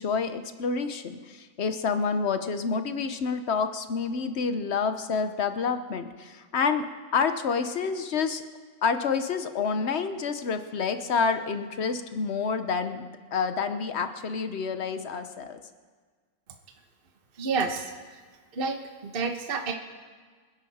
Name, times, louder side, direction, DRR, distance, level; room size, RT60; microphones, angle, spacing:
voice 1, 0.0-6.9 7.1-8.4 8.8-15.6, left 5 dB, 55° left, 9 dB, 0.7 m, -28 dB
voice 2, 17.4-18.2 18.5-18.8 19.1-19.7, right 4 dB, 35° right, 4 dB, 1.1 m, -29 dB
25.0 x 10.5 x 4.2 m, 1.5 s
omnidirectional pair, 2.1 m